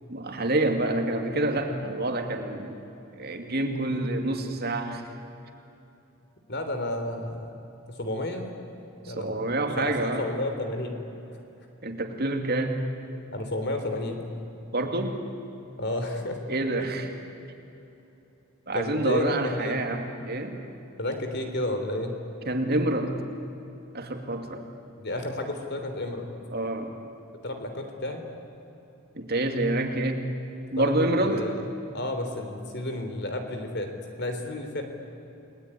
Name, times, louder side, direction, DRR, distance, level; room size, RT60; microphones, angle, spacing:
voice 1, 0.1-2.8 3.2-5.0 9.0-10.3 11.8-12.8 14.7-15.2 16.5-17.1 18.7-20.6 22.5-23.1 23.9-24.6 26.5-26.9 29.1-30.2 30.7-31.5, right 2 dB, 45° right, 4 dB, 2.5 m, -27 dB
voice 2, 6.5-7.5 7.9-8.5 9.0-9.5 9.8-11.0 13.3-14.2 15.8-16.4 18.7-19.8 21.0-22.2 25.0-26.3 27.4-28.2 30.8-30.9 31.2-31.6 31.9-33.9 34.2-34.8, left 1 dB, 50° left, 6 dB, 3.4 m, -31 dB
29.5 x 20.0 x 9.8 m, 2.9 s
head